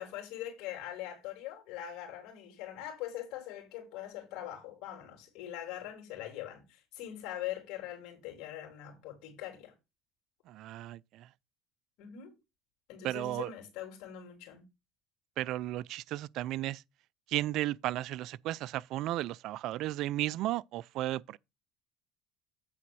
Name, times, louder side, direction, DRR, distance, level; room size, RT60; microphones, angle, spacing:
voice 1, 0.0-9.7 12.0-12.3 12.9-14.6, left 12 dB, 70° left, 3.5 m, -42 dB
voice 2, 10.5-11.3 13.0-13.5 15.4-16.8 17.3-21.4, right 15 dB, 65° right, 0.4 m, -34 dB
8.7 x 4.1 x 6.2 m
supercardioid pair, 95°, 0 cm